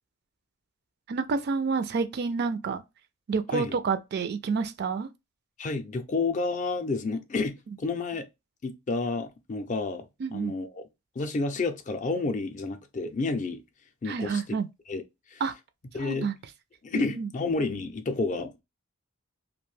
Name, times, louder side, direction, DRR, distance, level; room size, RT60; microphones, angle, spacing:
voice 1, 1.1-2.8 3.3-5.1 10.2-10.5 14.1-14.7 15.4-15.5 16.0-16.3 16.9-17.3, right 5 dB, 50° right, 0.3 m, -29 dB
voice 2, 5.6-8.3 8.6-10.1 10.3-10.8 11.2-13.6 14.0-14.6 14.9-15.0 15.3-15.4 15.9-16.3 16.8-18.5, left 3 dB, 35° left, 0.4 m, -30 dB
2.6 x 2.1 x 3.1 m
head